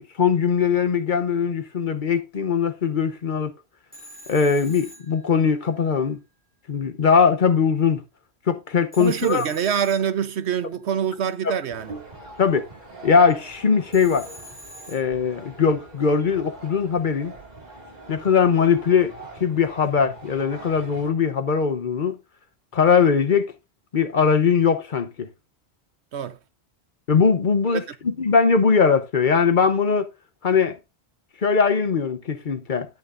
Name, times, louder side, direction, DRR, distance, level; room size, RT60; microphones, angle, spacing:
voice 1, 0.0-3.5 4.3-6.2 6.7-8.0 8.5-9.5 12.4-12.6 13.0-14.3 14.9-17.3 18.1-19.1 19.4-22.2 22.7-23.5 23.9-25.3 27.1-30.1 30.4-30.8 31.4-32.9, left 6 dB, 50° left, 0.9 m, -20 dB
Telephone, 3.9-5.9 8.9-10.7 13.9-15.6, equal, 10° right, 6.0 m, -45 dB
voice 2, 9.0-12.0 26.1-26.4 27.7-27.8, right 8 dB, 90° right, 1.1 m, -25 dB
sound 1, 11.7-21.1, right 2 dB, 40° right, 2.2 m, -43 dB
12.0 x 8.9 x 2.5 m
omnidirectional pair, 1.1 m